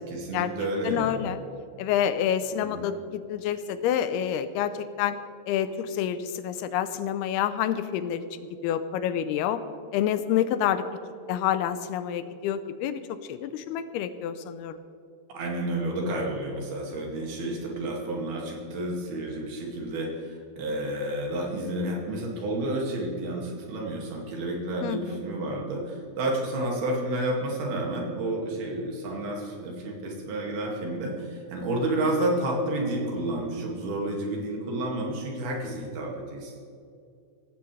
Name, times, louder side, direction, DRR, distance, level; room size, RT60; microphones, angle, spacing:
voice 1, 0.1-1.3 2.6-2.8 15.3-36.6, right 1 dB, 70° right, -1 dB, 4.1 m, -30 dB
voice 2, 0.8-1.4 1.8-5.2 5.5-8.2 8.6-9.6 9.9-10.8 11.3-13.0 13.3-14.8 24.8-25.2, left 10 dB, 80° left, 12 dB, 2.6 m, -28 dB
16.5 x 15.5 x 3.3 m, 2.4 s
omnidirectional pair, 4.6 m